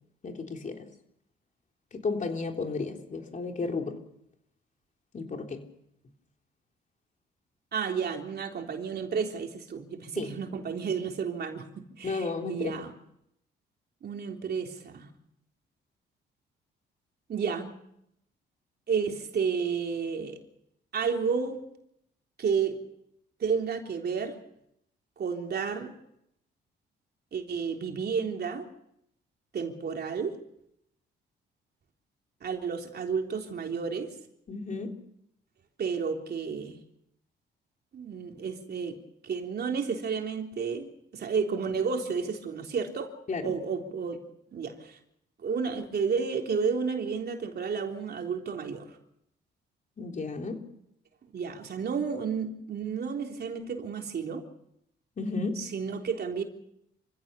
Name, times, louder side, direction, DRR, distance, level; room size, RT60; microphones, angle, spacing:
voice 1, 0.2-0.9 1.9-4.0 5.1-5.7 10.2-10.3 12.0-12.8 34.5-35.0 43.3-43.5 50.0-50.7 55.2-55.6, left 4 dB, 40° left, 3 dB, 3.5 m, -33 dB
voice 2, 7.7-12.9 14.0-15.1 17.3-17.7 18.9-20.4 20.9-21.6 22.4-22.8 23.4-24.4 25.2-25.9 27.3-28.7 29.5-30.4 32.4-34.2 35.8-36.8 37.9-39.0 39.2-43.1 43.4-44.2 44.5-45.0 45.4-49.0 51.3-54.4 55.6-56.4, right 6 dB, 55° right, 3 dB, 3.6 m, -31 dB
27.5 x 16.0 x 7.0 m, 0.77 s
cardioid pair, 90°, 20 cm